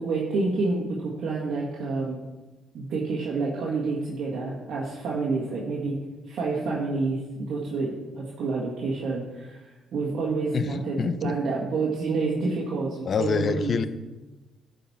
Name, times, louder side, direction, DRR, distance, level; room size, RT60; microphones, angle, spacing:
voice 1, 0.0-2.2 2.7-6.0 6.3-11.0 11.2-13.8, right 3 dB, 70° right, -4 dB, 1.7 m, -28 dB
voice 2, 10.5-11.3 13.0-13.9, left 5 dB, 50° left, 13 dB, 0.6 m, -26 dB
12.0 x 5.2 x 4.3 m, 1.2 s
cardioid pair, 90°, 0 cm